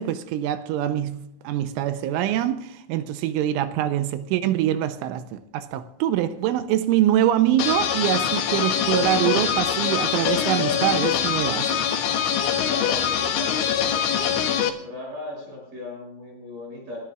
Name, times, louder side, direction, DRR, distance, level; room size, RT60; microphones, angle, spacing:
voice 1, 0.0-11.7, right 12 dB, 80° right, 3.0 m, -24 dB
sound 1, 7.6-14.7, left 8 dB, 75° left, 3.7 m, -23 dB
voice 2, 12.6-14.3 14.8-17.0, left 2 dB, 50° right, 7.9 m, -37 dB
30.0 x 13.0 x 2.4 m
omnidirectional pair, 5.9 m